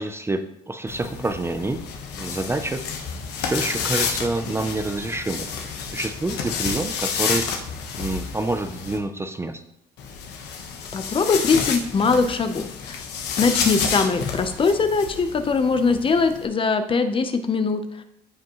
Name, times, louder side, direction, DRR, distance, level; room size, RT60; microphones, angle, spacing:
voice 1, 0.0-1.8 2.2-2.8 3.4-5.5 5.9-7.5 7.9-9.6, right 2 dB, 15° right, 8 dB, 0.5 m, -27 dB
sound 1, 0.9-9.0 10.0-16.5, left 6 dB, 80° left, 1.3 m, -30 dB
voice 2, 10.9-13.0 13.4-17.8, left 4 dB, 30° left, 8 dB, 0.8 m, -21 dB
14.5 x 5.1 x 3.1 m, 0.75 s
cardioid pair, 110°, 17 cm